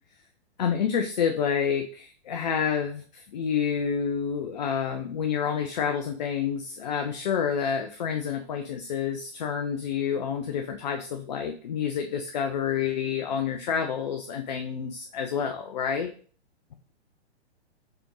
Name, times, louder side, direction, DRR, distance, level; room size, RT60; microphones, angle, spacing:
voice 1, 0.6-16.1, left 7 dB, 40° left, 5 dB, 0.4 m, -28 dB
5.0 x 3.5 x 3.0 m, 0.43 s
figure-of-eight pair, 115°, 34 cm